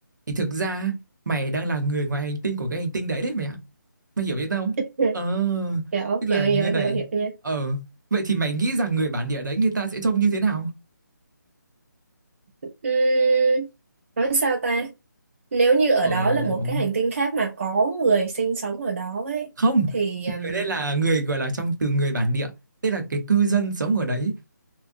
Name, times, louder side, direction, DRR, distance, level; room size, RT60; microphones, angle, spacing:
voice 1, 0.3-1.0 1.3-3.6 4.2-4.8 5.1-5.8 6.2-7.0 7.4-7.8 8.1-10.7 16.0-16.9 19.6-19.9 20.4-22.5 22.8-24.3, right 3 dB, 65° right, 0.8 m, -24 dB
voice 2, 5.9-7.3 12.8-13.7 14.2-14.9 15.5-19.5 19.9-20.7, right 4 dB, 40° right, 0.4 m, -23 dB
2.6 x 2.1 x 2.5 m
figure-of-eight pair, 165°, 11 cm